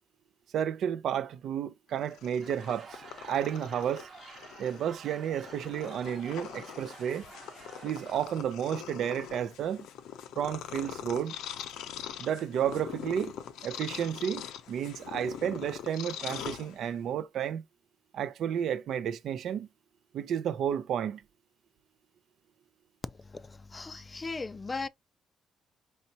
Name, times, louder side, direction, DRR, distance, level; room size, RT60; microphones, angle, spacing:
voice 1, 0.5-4.1 4.6-7.2 7.8-9.9 10.4-11.4 12.2-13.3 13.6-17.6 18.1-19.7 20.1-21.2, right 9 dB, 70° right, 0.5 m, -32 dB
Purr, 2.0-17.1, left 10 dB, 85° left, 0.5 m, -43 dB
Laughter / Crowd, 2.2-8.5, right 5 dB, 45° right, 0.9 m, -50 dB
voice 2, 23.2-24.9, left 3 dB, 25° left, 0.3 m, -38 dB
4.1 x 3.4 x 2.8 m
cardioid pair, 90°, 0 cm